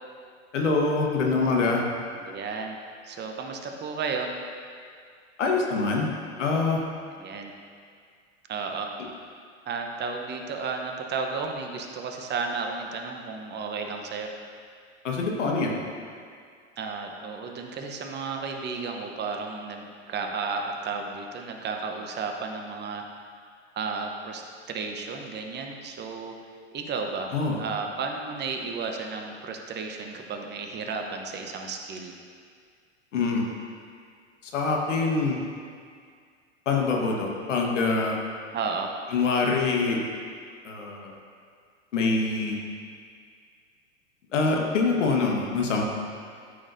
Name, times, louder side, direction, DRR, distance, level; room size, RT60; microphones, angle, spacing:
voice 1, 0.5-1.8 5.4-6.1 6.4-6.8 15.0-15.7 27.3-27.6 33.1-33.4 34.4-35.4 36.6-38.2 39.1-40.0 40.6-41.1 41.9-42.6 44.3-45.9, left 4 dB, 80° left, 0 dB, 1.5 m, -24 dB
voice 2, 2.1-2.8 3.0-4.3 7.1-7.5 8.5-8.9 9.7-14.3 16.8-23.0 23.8-26.4 26.7-32.1 38.5-38.9, right 4 dB, 30° right, 3 dB, 0.9 m, -33 dB
12.5 x 6.2 x 2.7 m, 2.1 s
hypercardioid pair, 100°, 36 cm